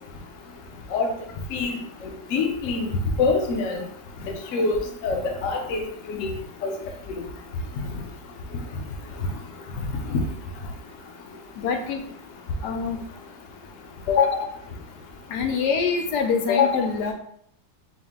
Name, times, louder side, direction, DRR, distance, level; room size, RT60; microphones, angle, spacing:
voice 1, 2.0-2.9 3.2-3.8 4.5-5.8 6.1-6.3 6.6-6.7 10.1-10.2, left 4 dB, 60° left, 2 dB, 0.9 m, -25 dB
voice 2, 11.6-12.0 12.6-13.0 14.1-14.5 15.3-17.1, left 6 dB, 85° left, 4 dB, 1.2 m, -23 dB
4.3 x 2.0 x 3.6 m, 0.64 s
omnidirectional pair, 1.7 m